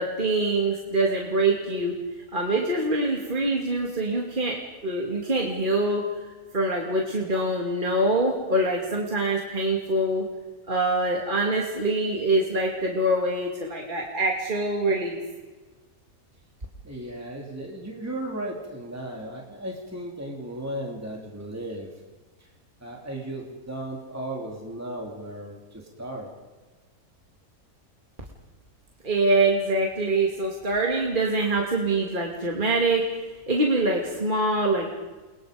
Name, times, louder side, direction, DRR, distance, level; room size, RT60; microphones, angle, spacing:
voice 1, 0.0-2.0 2.3-6.0 6.5-10.2 10.7-15.2 29.0-33.0 33.5-34.9, right 2 dB, 35° right, -1 dB, 2.9 m, -24 dB
voice 2, 16.8-21.9 22.4-22.5 22.8-26.3, right 1 dB, 10° right, 0 dB, 3.2 m, -35 dB
29.5 x 24.0 x 5.3 m, 1.2 s
omnidirectional pair, 1.6 m